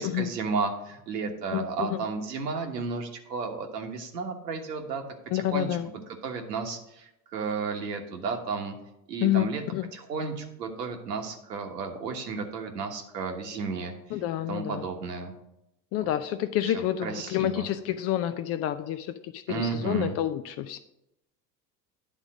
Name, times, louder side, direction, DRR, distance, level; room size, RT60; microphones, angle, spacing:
voice 1, 0.0-5.0 5.3-5.7 6.2-8.8 9.1-9.6 9.9-15.3 16.6-17.7 19.5-20.2, right 4 dB, 80° right, 3 dB, 1.4 m, -33 dB
voice 2, 1.5-2.0 5.3-5.9 9.2-9.5 9.7-9.9 14.1-14.8 15.9-20.8, left 12 dB, 35° left, 11 dB, 0.4 m, -28 dB
9.9 x 3.7 x 6.1 m, 0.85 s
hypercardioid pair, 80°, 49 cm